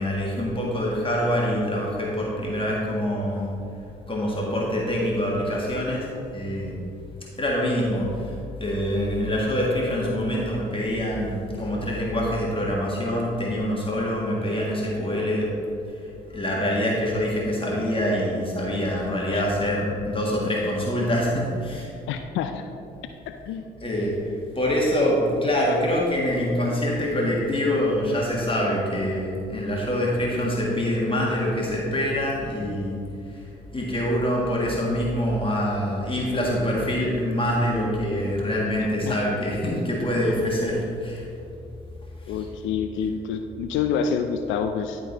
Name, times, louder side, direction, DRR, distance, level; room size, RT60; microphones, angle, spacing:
voice 1, 0.0-3.5 4.1-6.8 7.4-8.3 8.6-15.6 16.3-21.9 23.8-33.0 33.7-41.3 42.3-42.5, equal, 25° left, -3 dB, 1.7 m, -25 dB
voice 2, 19.3-19.7 22.1-22.6 23.3-23.6 39.0-39.2 42.3-45.0, left 7 dB, 75° left, 7 dB, 0.4 m, -28 dB
11.5 x 3.9 x 4.0 m, 2.6 s
hypercardioid pair, 55°, 20 cm